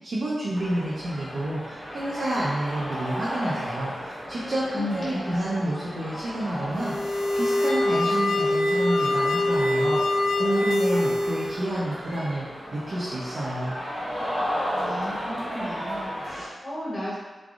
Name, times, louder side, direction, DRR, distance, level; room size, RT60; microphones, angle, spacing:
voice 1, 0.0-12.5 12.7-13.8, right 1 dB, 55° right, -7 dB, 0.6 m, -29 dB
sound 1, 0.5-16.5, equal, 15° right, 0.7 m, -35 dB
voice 2, 4.7-5.4 14.7-17.1, left 1 dB, 20° left, -8 dB, 1.0 m, -34 dB
sound 2, 6.7-11.6, left 1 dB, 85° left, 0.3 m, -24 dB
3.6 x 3.2 x 2.4 m, 1.3 s
wide cardioid pair, 120°, 0 cm